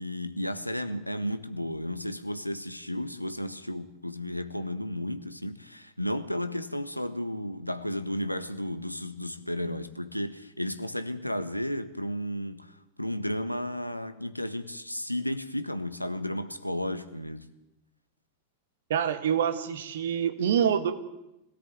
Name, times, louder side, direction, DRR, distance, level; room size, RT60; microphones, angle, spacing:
voice 1, 0.0-17.5, left 1 dB, 90° left, 1.4 m, -33 dB
voice 2, 18.9-20.9, right 8 dB, 60° right, 2.1 m, -26 dB
25.0 x 18.0 x 9.2 m
figure-of-eight pair, 90°, 0 cm